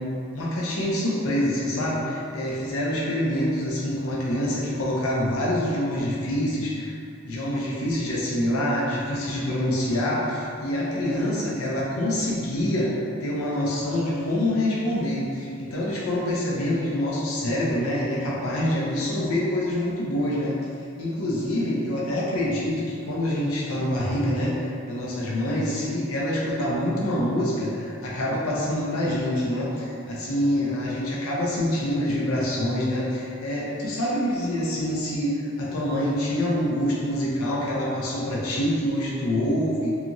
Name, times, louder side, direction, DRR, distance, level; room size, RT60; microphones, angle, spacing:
voice 1, 0.0-6.9 7.2-20.6 21.0-39.9, left 1 dB, 80° left, -5 dB, 0.5 m, -26 dB
2.9 x 2.4 x 2.5 m, 2.5 s
head